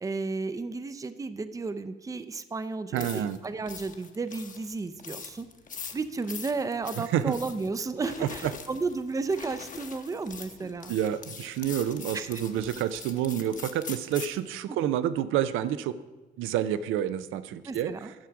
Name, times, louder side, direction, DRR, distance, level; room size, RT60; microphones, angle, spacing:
voice 1, 0.0-5.5 5.9-10.9 12.1-12.3 14.7-14.9 17.7-18.1, right 4 dB, 15° right, 12 dB, 0.5 m, -33 dB
sound 1, 2.9-14.4, left 5 dB, 40° left, 0.9 m, -43 dB
voice 2, 2.9-3.4 7.0-7.4 8.2-8.5 10.6-16.0 16.4-17.9, right 10 dB, 90° right, 14 dB, 0.5 m, -29 dB
10.5 x 6.3 x 5.8 m, 1.2 s
cardioid pair, 90°, 20 cm